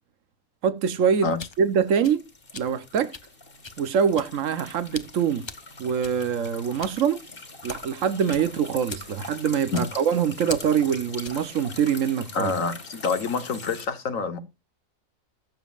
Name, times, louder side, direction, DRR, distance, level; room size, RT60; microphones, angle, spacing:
voice 1, 0.6-1.3 1.6-2.2 2.5-3.1 3.8-5.4 5.8-7.2 7.6-12.5, right 7 dB, 75° right, 1.3 m, -24 dB
sound 1, 1.1-13.9, left 3 dB, 45° left, 2.3 m, -43 dB
sound 2, 1.1-11.5, left 4 dB, 25° left, 0.7 m, -43 dB
voice 2, 12.3-14.4, left 4 dB, 85° left, 1.6 m, -27 dB
20.5 x 7.3 x 2.5 m
omnidirectional pair, 1.3 m